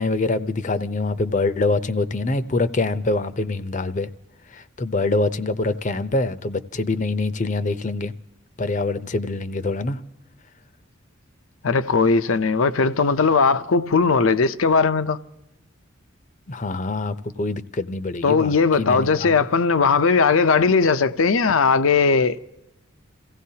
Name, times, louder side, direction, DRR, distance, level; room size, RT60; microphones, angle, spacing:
voice 1, 0.0-4.1 4.5-8.1 8.6-10.0 16.5-19.4, left 2 dB, 35° left, 0.6 m, -25 dB
voice 2, 11.6-15.2 18.2-22.4, left 4 dB, 80° left, 0.6 m, -18 dB
28.5 x 16.5 x 2.8 m
head